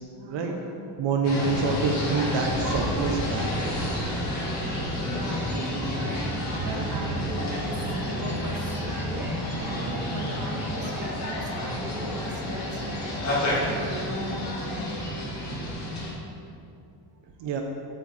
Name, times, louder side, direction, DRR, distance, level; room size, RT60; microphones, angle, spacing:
voice 1, 0.1-0.8 1.4-1.7 4.9-14.9, right 2 dB, 40° right, 0 dB, 1.6 m, -38 dB
voice 2, 1.0-3.5 8.9-9.0 17.4-17.6, right 4 dB, 75° right, 2 dB, 1.1 m, -26 dB
sound 1, 1.2-16.1, equal, 35° left, 2.7 m, -30 dB
sound 2, 1.9-15.0, left 2 dB, 85° left, 1.9 m, -43 dB
sound 3, 6.2-14.8, right 1 dB, 5° right, 0.6 m, -45 dB
8.4 x 6.8 x 7.7 m, 2.5 s
cardioid pair, 170°, 44 cm